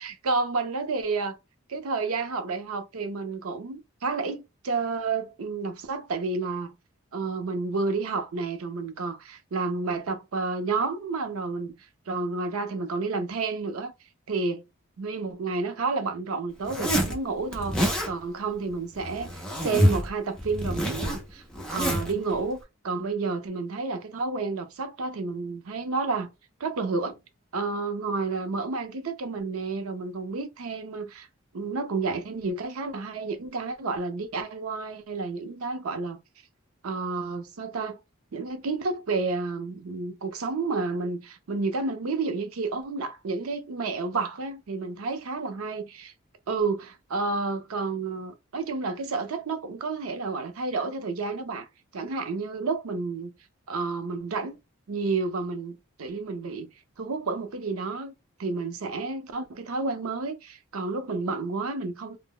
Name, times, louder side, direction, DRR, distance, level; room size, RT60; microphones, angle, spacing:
voice 1, 0.0-1.4 1.7-6.7 7.1-11.7 12.1-13.9 14.3-14.6 15.0-21.4 21.7-22.6 22.8-26.3 26.6-27.2 27.5-31.3 31.5-36.2 36.8-38.0 38.3-46.1 46.5-51.7 51.9-53.3 53.7-54.6 54.9-56.7 57.0-58.1 58.4-62.2, right 4 dB, 90° right, 0.5 m, -30 dB
Zipper (clothing), 16.6-17.2 17.5-18.1 18.9-20.1 20.4-22.1, equal, 5° left, 0.5 m, -26 dB
2.1 x 2.0 x 3.6 m
head